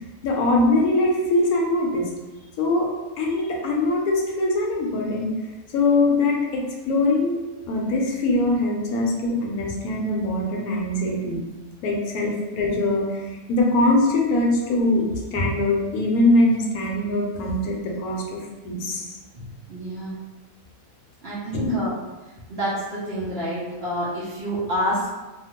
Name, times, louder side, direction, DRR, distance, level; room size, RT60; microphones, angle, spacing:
voice 1, 0.2-2.1 2.6-2.9 3.2-5.3 5.7-7.4 7.7-11.4 11.8-19.1 21.5-21.8, left 2 dB, 75° left, -1 dB, 1.0 m, -22 dB
voice 2, 19.3-20.2 21.2-22.0 22.5-25.1, equal, 50° right, -8 dB, 0.8 m, -28 dB
2.7 x 2.4 x 2.8 m, 1.2 s
omnidirectional pair, 1.6 m